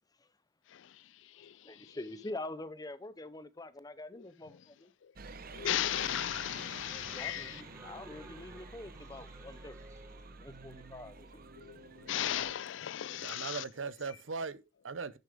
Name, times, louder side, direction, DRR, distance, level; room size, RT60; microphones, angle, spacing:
voice 1, 0.7-2.0 4.1-4.2 5.0-5.1 5.5-7.6 11.6-13.6, left 11 dB, 70° left, 0.4 m, -36 dB
voice 2, 1.6-4.9 6.9-9.8 10.4-11.4, left 2 dB, 20° left, 0.7 m, -45 dB
sound 1, 5.2-12.5, right 4 dB, 50° right, 1.0 m, -49 dB
sound 2, 5.8-11.1, right 1 dB, 15° right, 3.1 m, -56 dB
voice 3, 13.1-15.2, right 4 dB, 75° right, 0.8 m, -39 dB
10.5 x 7.4 x 3.5 m
head